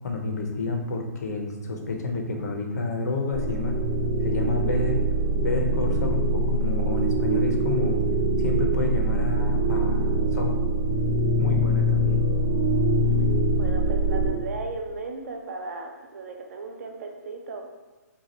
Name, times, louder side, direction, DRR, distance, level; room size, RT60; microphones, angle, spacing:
voice 1, 0.0-3.7 4.2-5.0 5.4-8.0 8.4-10.6 11.4-12.2, left 3 dB, 70° left, 2 dB, 0.6 m, -29 dB
sound 1, 3.3-14.3, right 1 dB, 40° right, 1.0 m, -23 dB
voice 2, 13.5-17.6, right 3 dB, 60° right, 4 dB, 0.4 m, -36 dB
2.7 x 2.4 x 2.9 m, 1.2 s
hypercardioid pair, 135°, 9 cm